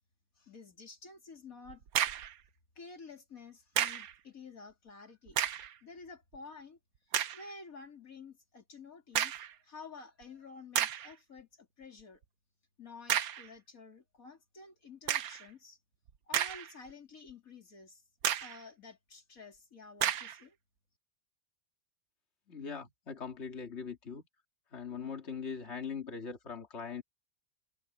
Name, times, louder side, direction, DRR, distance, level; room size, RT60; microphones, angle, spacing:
voice 1, 0.4-1.8 2.7-5.4 5.8-6.8 7.3-12.2 12.8-15.8 16.2-18.0 18.4-20.6, left 4 dB, 75° left, 3.4 m, -51 dB
sound 1, 1.7-2.4 3.8-4.1 5.3-5.7 6.3-6.4 7.1-7.5 9.2-9.5 10.2-10.3 10.8-11.1 13.1-13.5 15.1-15.5 16.1-16.9 17.3-17.4 18.2-18.6 20.0-20.4, right 10 dB, 90° right, 1.3 m, -32 dB
voice 2, 22.5-24.2 24.7-27.0, left 6 dB, 50° left, 2.5 m, -41 dB
omnidirectional pair, 1.5 m